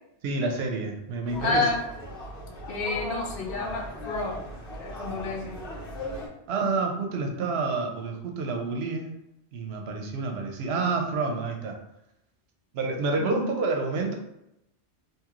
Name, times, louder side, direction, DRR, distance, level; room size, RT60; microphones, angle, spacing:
voice 1, 0.2-1.7 6.5-9.1 9.5-11.8 12.7-14.1, right 3 dB, 75° right, 2 dB, 0.8 m, -28 dB
sound 1, 1.2-6.3, left 1 dB, 85° left, 1.2 m, -38 dB
voice 2, 1.4-1.8 2.7-4.4 4.8-5.6 13.2-13.4, left 3 dB, 65° left, 1 dB, 0.7 m, -29 dB
2.9 x 2.8 x 2.4 m, 0.84 s
omnidirectional pair, 1.1 m